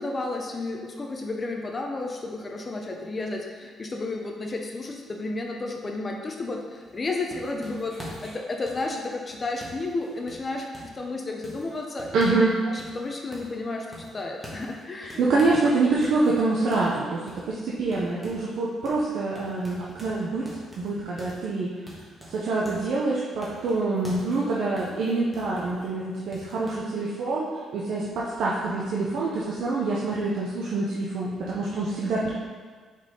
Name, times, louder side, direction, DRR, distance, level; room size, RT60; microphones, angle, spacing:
voice 1, 0.0-12.4 12.7-15.2, left 2 dB, 30° left, 2 dB, 0.6 m, -32 dB
sound 1, 6.8-11.0 11.4-12.5 12.8-13.6 13.9-15.7 16.0-18.6 18.8-19.1 19.4-22.9 23.4-25.9 26.3-26.7, equal, 5° right, 1.6 m, -45 dB
voice 2, 12.1-12.5 15.2-20.5 20.8-21.7 22.3-27.5 27.7-32.3, right 3 dB, 75° right, -5 dB, 0.8 m, -26 dB
6.2 x 4.2 x 3.8 m, 1.5 s
cardioid pair, 90°, 0 cm